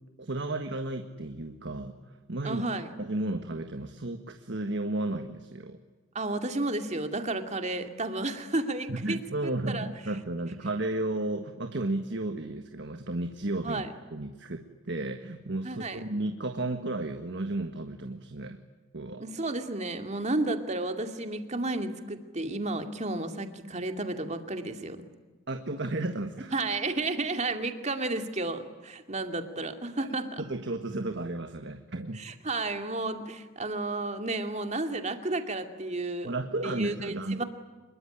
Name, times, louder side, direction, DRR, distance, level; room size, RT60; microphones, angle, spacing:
voice 1, 0.2-2.6 3.0-5.8 8.9-13.8 14.1-18.6 18.9-19.3 25.5-26.5 30.0-30.1 30.4-32.2 36.2-37.4, right 2 dB, 60° right, 6 dB, 1.6 m, -33 dB
voice 2, 2.4-2.9 6.1-9.9 13.6-13.9 15.6-16.0 19.2-25.1 26.5-30.4 32.1-37.4, right 2 dB, 35° right, 6 dB, 2.4 m, -32 dB
26.5 x 22.5 x 10.0 m, 1.2 s
head